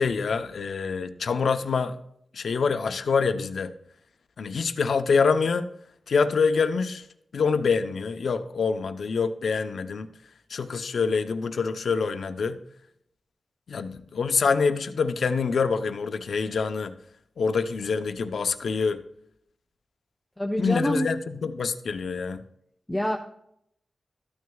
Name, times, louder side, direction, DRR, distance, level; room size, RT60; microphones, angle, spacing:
voice 1, 0.0-2.0 2.3-3.7 4.4-5.7 6.1-7.0 7.3-10.1 10.5-12.6 13.7-16.9 17.4-19.0 20.6-22.5, left 5 dB, 80° left, 0.7 m, -25 dB
voice 2, 20.4-21.1 22.9-23.2, equal, 5° left, 0.8 m, -26 dB
13.5 x 9.4 x 2.3 m
wide cardioid pair, 85°, 0 cm